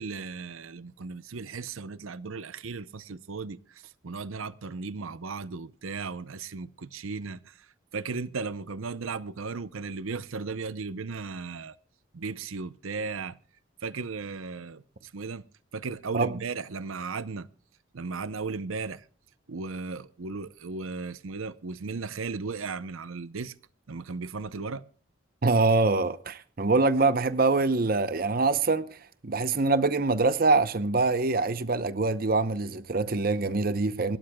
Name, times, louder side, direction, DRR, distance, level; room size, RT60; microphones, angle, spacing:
voice 1, 0.0-11.8 12.1-13.4 13.8-15.4 15.7-17.5 17.9-19.1 19.5-23.5 23.9-24.8, right 4 dB, 85° right, 0.7 m, -36 dB
voice 2, 25.4-28.9 29.2-34.2, right 3 dB, 45° right, 0.7 m, -24 dB
26.0 x 12.5 x 2.3 m
head